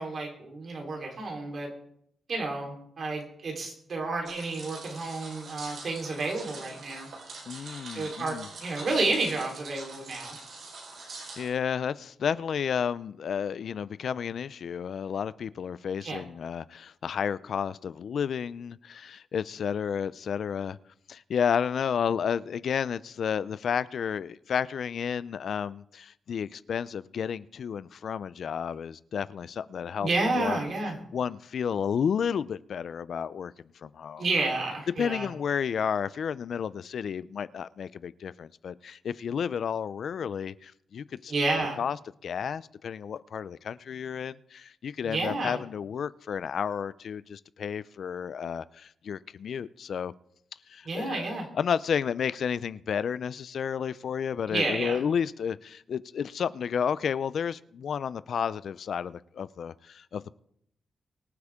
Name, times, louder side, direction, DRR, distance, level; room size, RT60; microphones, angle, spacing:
voice 1, 0.0-1.7 2.3-7.1 7.9-10.4 16.0-16.2 30.0-31.0 34.2-35.3 41.3-41.8 45.0-45.6 50.8-51.5 54.5-55.0, right 3 dB, 50° right, 3.7 m, -30 dB
sound 1, 4.3-11.5, right 3 dB, 70° right, 4.4 m, -44 dB
voice 2, 7.5-8.5 11.4-20.8 21.1-30.1 30.4-30.6 31.1-33.5 33.8-34.2 35.0-41.3 41.8-42.0 42.2-50.1 50.7-51.3 51.6-60.4, left 7 dB, 65° left, 0.4 m, -31 dB
23.5 x 8.1 x 3.6 m
wide cardioid pair, 125°, 0 cm